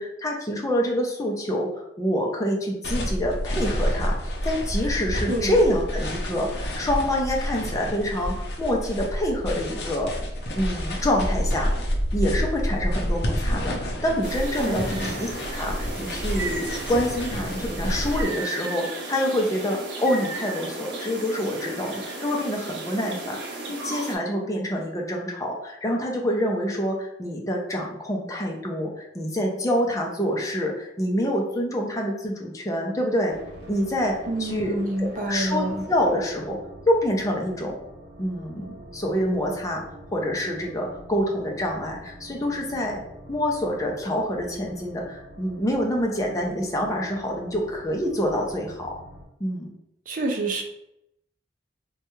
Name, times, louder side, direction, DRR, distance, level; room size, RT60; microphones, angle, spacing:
voice 1, 0.0-1.7 2.0-10.1 10.5-11.7 12.1-23.4 23.7-33.3 33.7-36.6 36.9-37.7 38.2-39.8 40.1-43.0 43.3-48.9 49.4-49.7, equal, 20° left, -1 dB, 0.6 m, -26 dB
sound 1, 2.8-18.3, equal, 70° left, 0.6 m, -29 dB
sound 2, 14.2-24.2, right 2 dB, 90° right, 0.7 m, -35 dB
voice 2, 14.6-15.2 34.3-35.8 50.1-50.6, right 1 dB, 50° right, 2 dB, 0.5 m, -28 dB
sound 3, 33.3-49.2, equal, 65° right, 1.1 m, -45 dB
3.3 x 2.3 x 3.0 m, 0.81 s
head